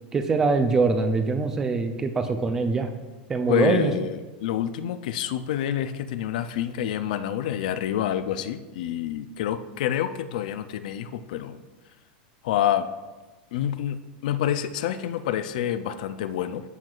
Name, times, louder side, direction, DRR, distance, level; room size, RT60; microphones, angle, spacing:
voice 1, 0.1-2.9 3.3-3.9, right 4 dB, 10° right, 7 dB, 0.4 m, -23 dB
voice 2, 3.5-11.6 12.4-12.9 13.5-16.6, left 10 dB, 55° left, 12 dB, 0.4 m, -27 dB
13.5 x 4.5 x 2.4 m, 1.2 s
supercardioid pair, 180°, 5 cm